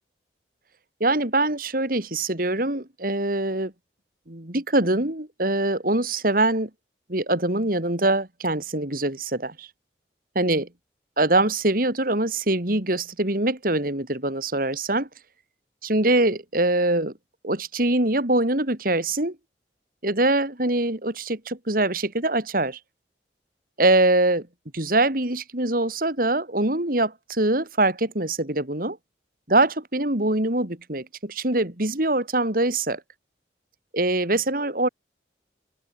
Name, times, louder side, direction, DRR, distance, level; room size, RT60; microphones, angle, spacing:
voice 1, 1.0-3.7 4.3-6.7 7.1-9.7 10.3-10.7 11.2-15.1 15.8-17.1 17.4-19.4 20.0-22.8 23.8-24.5 24.7-29.0 29.5-33.0 33.9-34.9, right 2 dB, 55° right, 3.3 m, -23 dB
open air
head